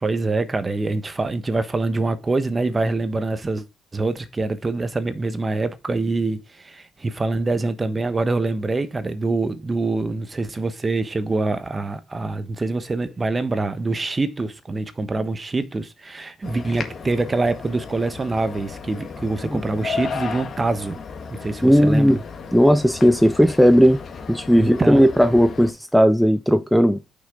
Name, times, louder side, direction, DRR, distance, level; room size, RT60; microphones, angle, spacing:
voice 1, 0.0-3.6 3.9-21.0 21.3-22.2 24.6-25.0, right 3 dB, 25° right, 1.1 m, -25 dB
sound 1, 16.4-25.7, left 5 dB, 45° left, 1.7 m, -34 dB
voice 2, 21.6-22.2 22.5-24.0 24.3-27.0, equal, ahead, 0.6 m, -16 dB
6.2 x 6.1 x 3.9 m
cardioid pair, 90°, 0 cm